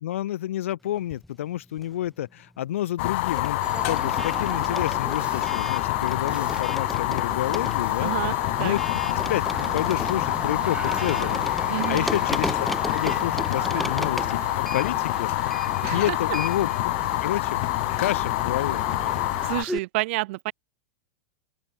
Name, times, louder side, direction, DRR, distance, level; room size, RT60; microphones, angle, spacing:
voice 1, 0.0-8.3 8.6-8.8 9.3-16.9 17.2-17.6 18.0-18.8, left 13 dB, 75° left, 0.4 m, -30 dB
sound 1, 1.0-2.2 2.5-19.8, left 1 dB, ahead, 3.0 m, -37 dB
Fire, 3.0-19.6, left 23 dB, 60° left, 1.3 m, -26 dB
sound 2, 3.6-19.6, right 5 dB, 15° right, 1.1 m, -38 dB
voice 2, 8.0-8.8 11.7-12.1 15.8-16.2 19.4-20.5, right 21 dB, 60° right, 2.0 m, -29 dB
open air
hypercardioid pair, 105°, 7 cm